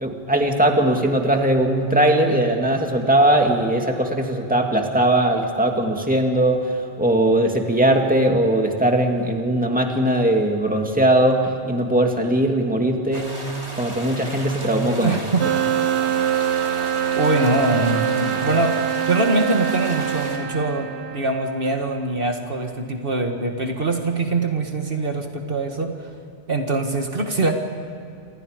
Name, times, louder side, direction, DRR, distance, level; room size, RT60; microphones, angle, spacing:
voice 1, 0.0-13.4 13.8-15.1, right 1 dB, 10° right, 2 dB, 2.3 m, -20 dB
sound 1, 13.1-20.4, right 1 dB, 25° right, 3.1 m, -35 dB
voice 2, 15.0-15.5 17.2-18.8 19.1-25.9 26.5-27.5, right 2 dB, 60° right, 3 dB, 2.0 m, -23 dB
sound 2, 15.4-21.8, right 10 dB, 85° right, 1.2 m, -24 dB
28.0 x 26.5 x 5.2 m, 2.6 s
omnidirectional pair, 1.1 m